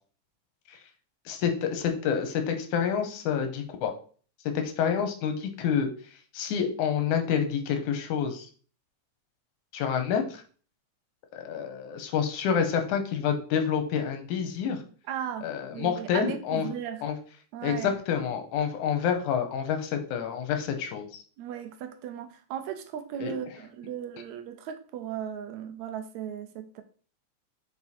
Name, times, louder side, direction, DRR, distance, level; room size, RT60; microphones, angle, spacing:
voice 1, 1.3-3.9 4.5-5.9 6.3-8.5 9.7-10.4 11.3-14.8 15.4-16.7 17.0-17.2 17.6-21.2 23.2-23.3, left 7 dB, 80° left, 6 dB, 2.5 m, -28 dB
voice 2, 15.1-17.0 17.5-17.9 21.4-26.8, right 9 dB, 80° right, 8 dB, 1.8 m, -36 dB
6.7 x 4.5 x 4.3 m, 0.42 s
omnidirectional pair, 3.5 m